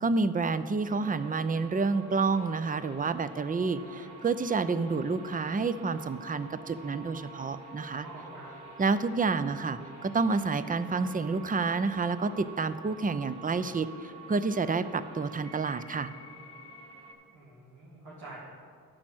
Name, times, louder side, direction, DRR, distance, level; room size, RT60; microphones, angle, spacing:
voice 1, 0.0-8.1 8.8-16.1, right 4 dB, 20° right, 13 dB, 0.6 m, -29 dB
sound 1, 0.8-17.1, right 2 dB, 50° right, 2.7 m, -48 dB
voice 2, 8.0-8.5 17.3-18.4, right 2 dB, 85° right, -8 dB, 2.1 m, -47 dB
8.8 x 6.1 x 7.8 m, 2.2 s
supercardioid pair, 45°, 37 cm